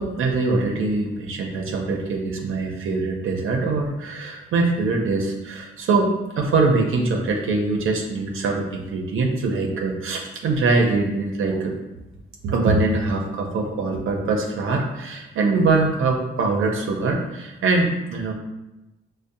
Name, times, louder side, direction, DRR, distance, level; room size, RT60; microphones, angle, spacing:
voice 1, 0.0-11.7 12.4-18.3, right 3 dB, 75° right, 1 dB, 0.5 m, -23 dB
5.2 x 2.0 x 2.6 m, 1.0 s
cardioid pair, 100°, 21 cm